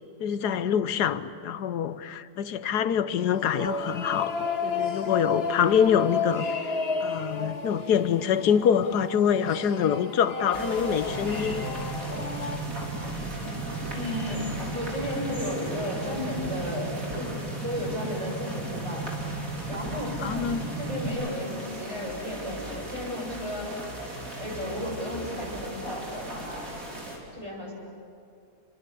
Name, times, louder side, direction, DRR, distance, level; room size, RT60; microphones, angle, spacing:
voice 1, 0.2-4.3 4.6-6.5 7.0-11.6 20.2-20.6, left 8 dB, 80° left, 13 dB, 1.5 m, -25 dB
sound 1, 3.2-12.6, left 4 dB, 40° left, 1.7 m, -32 dB
sound 2, 10.5-27.2, right 1 dB, 60° right, 4.6 m, -39 dB
sound 3, 11.1-21.1, right 2 dB, 75° right, 3.1 m, -35 dB
voice 2, 13.9-14.5 14.7-17.3 17.6-19.0 19.7-23.7 24.4-26.6 27.3-27.7, left 1 dB, 20° right, -2 dB, 7.7 m, -34 dB
28.0 x 23.5 x 8.5 m, 2.5 s
omnidirectional pair, 1.7 m